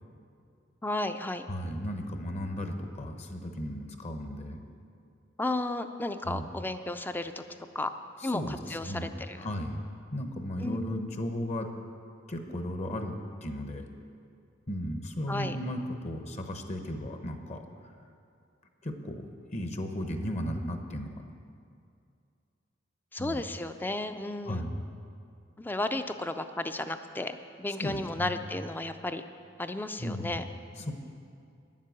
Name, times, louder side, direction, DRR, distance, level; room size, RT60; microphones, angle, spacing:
voice 1, 0.8-1.5 5.4-7.4 7.7-7.9 8.2-9.5 10.6-11.1 15.3-15.6 23.1-24.6 25.6-29.2 29.6-30.5, left 2 dB, 10° left, 9 dB, 0.4 m, -33 dB
voice 2, 1.5-4.6 6.3-6.5 8.2-9.1 9.4-9.8 10.1-11.7 12.3-13.1 13.4-13.8 14.7-17.6 18.8-19.3 19.5-21.2 23.2-23.4 24.5-24.8 27.8-28.4 30.0-30.4 30.8-30.9, equal, 35° left, 5 dB, 0.8 m, -35 dB
10.0 x 7.4 x 9.1 m, 2.4 s
head